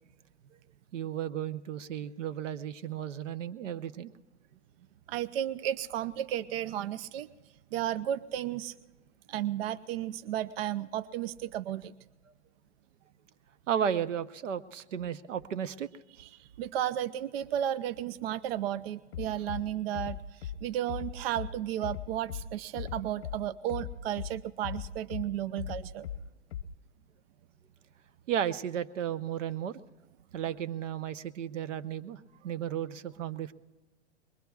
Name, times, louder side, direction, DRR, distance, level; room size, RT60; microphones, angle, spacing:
voice 1, 0.9-4.1 13.7-15.9 28.3-29.8 30.3-33.5, right 9 dB, 85° right, 13 dB, 0.8 m, -34 dB
voice 2, 5.1-7.3 7.7-8.7 9.3-11.9 16.4-26.1, right 11 dB, 55° right, 14 dB, 0.5 m, -33 dB
Bass drum, 19.1-19.6 19.9-20.6 20.9-21.5 21.8-22.4 22.8-23.4 23.7-24.3 24.6-25.2 25.6-26.2 26.5-26.6, left 11 dB, 55° left, 0.9 m, -37 dB
24.5 x 21.5 x 2.3 m, 1.2 s
hypercardioid pair, 150°, 36 cm